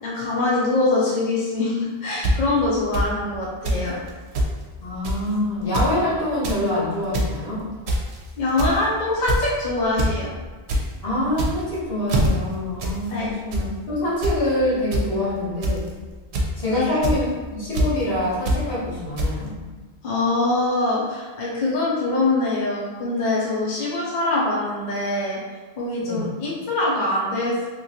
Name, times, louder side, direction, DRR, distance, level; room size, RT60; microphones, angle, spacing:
voice 1, 0.0-4.0 8.4-10.3 13.1-13.3 16.7-17.0 20.0-25.4 25.8-27.6, left 2 dB, 55° left, -6 dB, 0.7 m, -23 dB
sound 1, 2.2-2.3 2.9-3.0 3.6-3.8 4.1-4.2 4.3-4.5 5.0-5.3 5.6-5.9 6.3-6.6 7.0-7.3 7.9-8.2 8.6-8.8 9.3-9.5 10.0-10.1 10.4-10.8 11.3-11.7 12.1-12.3 12.8-13.0 13.3-13.6 14.2-14.4 14.9-15.0 15.6-15.9 16.3-16.6 17.0-17.2 17.7-17.9 18.5-18.6 19.2-19.3, right 1 dB, 85° right, 0.9 m, -22 dB
voice 2, 4.8-7.6 11.0-15.9 16.6-19.6 26.0-26.3, left 1 dB, 70° left, -8 dB, 1.3 m, -25 dB
3.0 x 2.5 x 2.7 m, 1.3 s
omnidirectional pair, 1.1 m